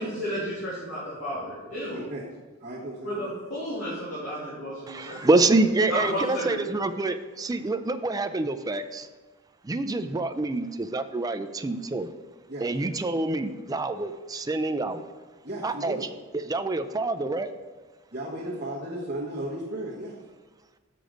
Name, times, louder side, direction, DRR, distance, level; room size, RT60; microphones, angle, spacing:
voice 1, 0.0-2.0 3.0-5.3 5.9-6.6, equal, 75° left, -9 dB, 2.6 m, -32 dB
voice 2, 1.9-2.2 2.6-3.3 12.5-12.7 15.4-16.1 16.9-17.1 18.1-20.2, right 1 dB, 40° right, -8 dB, 1.3 m, -35 dB
voice 3, 4.9-9.1 9.6-12.1 12.6-15.1 15.6-16.0 16.3-17.5, right 2 dB, 20° right, 10 dB, 0.4 m, -26 dB
6.8 x 6.2 x 5.1 m, 1.3 s
head